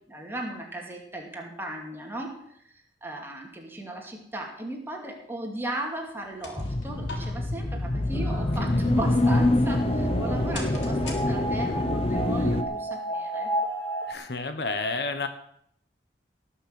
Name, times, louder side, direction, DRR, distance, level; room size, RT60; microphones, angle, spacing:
voice 1, 0.1-2.3 3.0-13.5, right 1 dB, 15° right, 0 dB, 2.6 m, -36 dB
sound 1, 6.1-11.8, left 3 dB, 85° left, 3.6 m, -46 dB
sound 2, 6.6-12.6, left 1 dB, 35° left, 1.0 m, -25 dB
sound 3, 8.1-14.1, right 1 dB, 10° left, 2.7 m, -33 dB
voice 2, 14.1-15.3, left 3 dB, 65° left, 8 dB, 1.3 m, -30 dB
18.5 x 6.3 x 7.8 m, 0.71 s
head